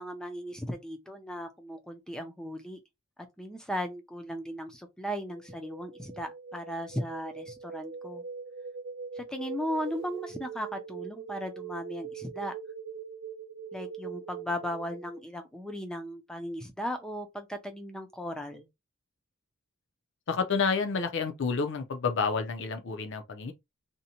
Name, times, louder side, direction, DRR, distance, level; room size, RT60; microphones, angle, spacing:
voice 1, 0.0-2.8 3.4-8.2 9.2-12.5 13.7-18.7, equal, 5° left, 0.4 m, -36 dB
sound 1, 5.3-15.2, right 6 dB, 55° right, 0.5 m, -42 dB
voice 2, 20.3-23.5, left 5 dB, 55° left, 0.5 m, -29 dB
2.6 x 2.1 x 2.8 m
head